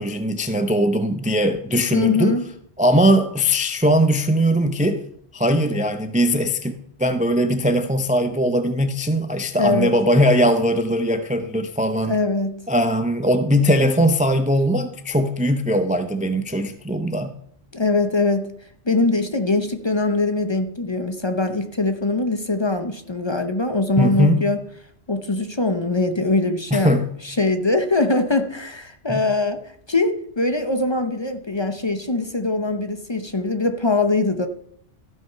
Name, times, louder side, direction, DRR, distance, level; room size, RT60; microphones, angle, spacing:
voice 1, 0.0-2.4 2.8-5.0 5.3-6.7 7.0-12.2 12.7-17.3 24.0-24.4 26.7-27.0 29.1-29.3, equal, 10° right, 0.3 m, -20 dB
voice 2, 1.9-2.4 9.6-9.9 12.1-12.6 17.7-18.5 18.9-24.6 25.1-26.9 27.2-29.6 29.9-34.5, left 3 dB, 30° left, 0.7 m, -22 dB
13.5 x 6.3 x 5.7 m
omnidirectional pair, 1.2 m